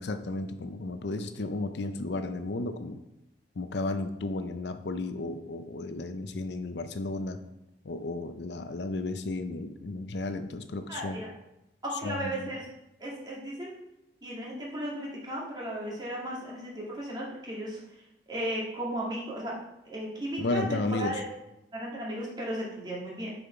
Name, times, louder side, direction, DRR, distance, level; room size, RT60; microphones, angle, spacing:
voice 1, 0.0-3.0 3.6-7.4 7.8-11.2 12.0-12.5 20.4-21.2, left 2 dB, 75° left, 9 dB, 0.6 m, -33 dB
voice 2, 10.9-11.3 11.8-12.7 13.0-13.8 14.2-17.8 18.3-19.6 19.8-21.2 21.7-23.3, right 1 dB, 25° right, -4 dB, 2.1 m, -35 dB
6.9 x 5.6 x 4.4 m, 0.87 s
head